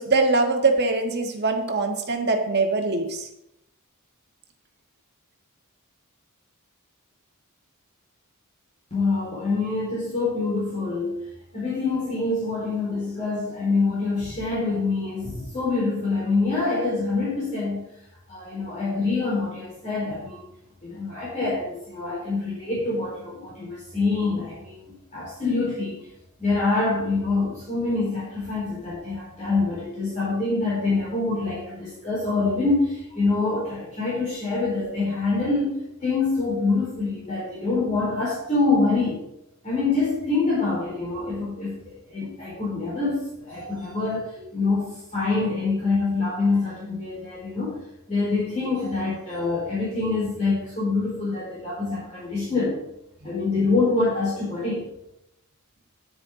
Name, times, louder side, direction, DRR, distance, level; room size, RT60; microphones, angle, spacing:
voice 1, 0.0-3.3, right 3 dB, 50° right, 3 dB, 1.5 m, -22 dB
voice 2, 8.9-11.2 11.5-17.9 18.3-20.4 20.8-26.1 26.4-39.2 39.6-47.8 48.1-52.8 53.2-54.9, left 3 dB, 35° left, -8 dB, 4.1 m, -25 dB
10.0 x 9.8 x 3.8 m, 0.80 s
head